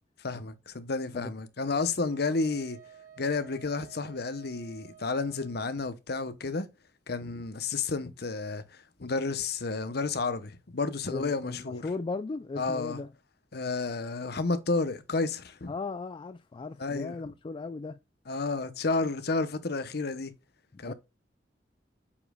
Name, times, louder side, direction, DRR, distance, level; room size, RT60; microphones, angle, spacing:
voice 1, 0.2-2.8 3.2-6.7 7.1-11.8 12.6-13.0 13.5-15.7 16.8-17.2 18.3-20.3 20.8-20.9, left 3 dB, 60° left, 0.9 m, -31 dB
Wind instrument woodwind instrument, 2.1-5.7, right 9 dB, 50° right, 2.8 m, -53 dB
voice 2, 11.1-13.1 15.7-18.0 20.7-20.9, left 3 dB, 30° left, 0.3 m, -37 dB
8.4 x 5.1 x 2.3 m
head